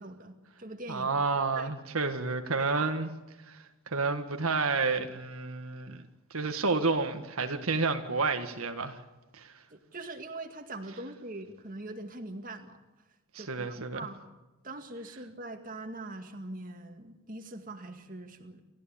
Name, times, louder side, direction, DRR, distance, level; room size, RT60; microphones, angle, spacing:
voice 1, 0.0-1.1 1.5-1.7 2.6-2.9 9.7-12.8 13.3-14.2 14.6-18.6, right 2 dB, 40° right, 5 dB, 2.1 m, -42 dB
voice 2, 0.9-3.1 3.5-6.0 6.3-9.0 9.3-9.5 13.3-14.0, right 4 dB, 90° right, 6 dB, 1.7 m, -30 dB
29.0 x 14.0 x 8.7 m, 1.1 s
head